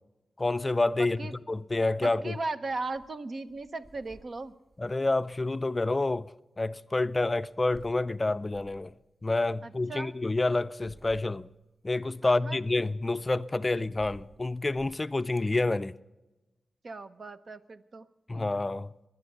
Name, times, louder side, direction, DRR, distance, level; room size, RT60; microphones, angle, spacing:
voice 1, 0.4-2.4 4.8-6.3 6.6-8.9 9.2-11.5 11.8-16.0 18.3-18.9, left 2 dB, 30° left, 0.4 m, -28 dB
voice 2, 1.0-1.4 2.0-4.5 9.6-10.1 12.2-12.6 16.8-18.1, right 3 dB, 55° right, 0.9 m, -37 dB
sound 1, 2.8-3.1 3.4-5.9 7.1-8.0 8.5-8.9 10.5-11.6 13.2-15.0, right 1 dB, 25° right, 4.8 m, -55 dB
22.0 x 9.6 x 5.5 m
cardioid pair, 60°, 0 cm